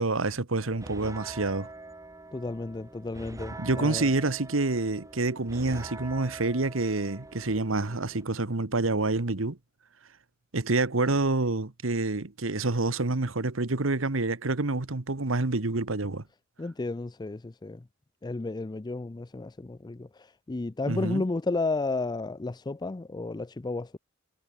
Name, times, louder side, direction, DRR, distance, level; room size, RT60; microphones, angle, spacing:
voice 1, 0.0-1.7 3.6-9.6 10.5-16.2 20.9-21.2, right 2 dB, 80° right, 1.4 m, -27 dB
sound 1, 0.6-8.2, right 2 dB, 15° right, 1.2 m, -44 dB
voice 2, 2.3-4.1 16.6-17.9 18.2-24.0, left 3 dB, 20° left, 0.4 m, -32 dB
head